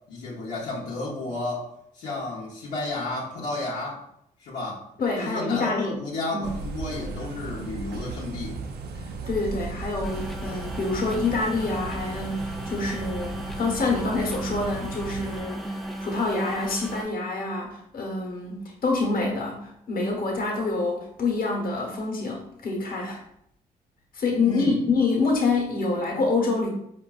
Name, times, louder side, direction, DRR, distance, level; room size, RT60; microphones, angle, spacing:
voice 1, 0.1-1.7 1.9-4.0 4.4-4.8 5.2-8.6 24.5-24.8, left 2 dB, 80° left, -8 dB, 0.9 m, -32 dB
voice 2, 5.0-6.0 6.3-6.5 9.3-15.7 16.0-23.2 24.1-26.7, left 3 dB, 60° left, -1 dB, 1.1 m, -26 dB
sound 1, 6.4-15.4, right 3 dB, 70° right, 0.4 m, -36 dB
sound 2, 10.0-17.0, right 1 dB, ahead, 0.4 m, -36 dB
4.5 x 2.5 x 2.4 m, 0.76 s
supercardioid pair, 55°, 17 cm